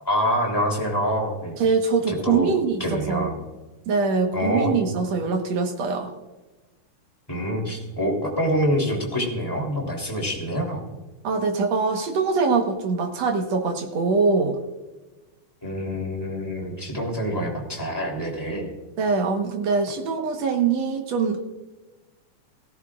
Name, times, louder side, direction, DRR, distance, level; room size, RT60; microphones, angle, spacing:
voice 1, 0.0-1.6 2.1-2.5 2.8-3.3 4.3-4.7 7.3-10.8 15.6-18.7, equal, 5° left, -2 dB, 2.9 m, -26 dB
voice 2, 1.6-3.3 3.9-6.1 11.2-14.6 19.0-21.4, right 4 dB, 60° right, 4 dB, 2.3 m, -23 dB
17.5 x 16.0 x 2.5 m, 1.2 s
omnidirectional pair, 3.7 m